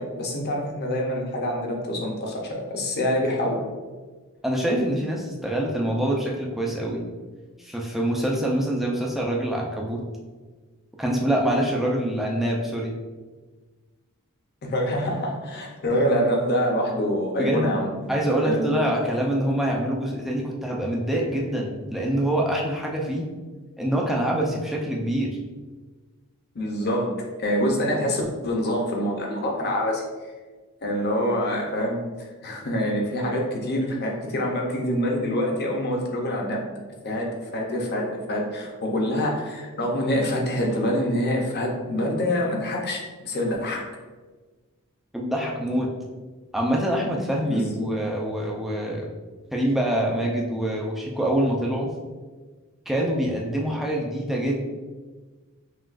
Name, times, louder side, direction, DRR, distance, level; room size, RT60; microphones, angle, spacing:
voice 1, 0.0-3.6 14.6-17.9 18.4-18.6 26.5-30.0 30.8-32.0 32.4-36.7 37.0-43.8 47.5-47.9, equal, 45° left, 0 dB, 0.7 m, -26 dB
voice 2, 4.4-7.0 7.6-10.0 11.0-13.0 17.4-17.7 18.1-23.3 23.8-25.4 45.1-45.9 46.5-49.1 49.5-51.9 52.9-54.7, right 1 dB, ahead, -2 dB, 0.5 m, -25 dB
5.8 x 2.4 x 2.5 m, 1.3 s
head